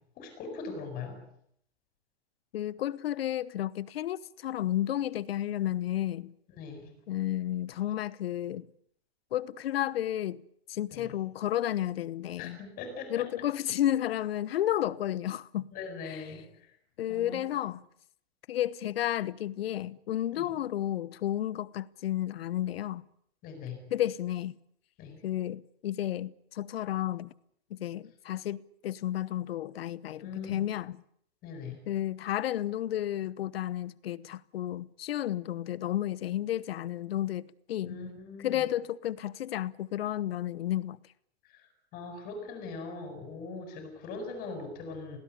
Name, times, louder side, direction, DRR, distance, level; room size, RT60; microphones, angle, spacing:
voice 1, 0.2-1.2 6.6-6.9 10.9-11.1 12.4-13.3 15.7-16.4 17.1-17.4 20.3-20.5 23.4-23.8 25.0-25.2 30.1-30.6 31.4-31.8 37.8-38.6 41.5-41.6 41.9-45.2, left 4 dB, 30° left, 7.4 m, -41 dB
voice 2, 2.5-6.3 7.1-8.7 9.3-10.4 10.7-12.6 13.1-15.7 16.0-16.3 17.0-17.8 18.5-23.1 23.9-24.5 25.2-27.3 27.7-31.0 31.9-38.0 38.4-41.0, left 12 dB, 70° left, 1.1 m, -32 dB
20.5 x 18.0 x 10.0 m
hypercardioid pair, 160°, 31 cm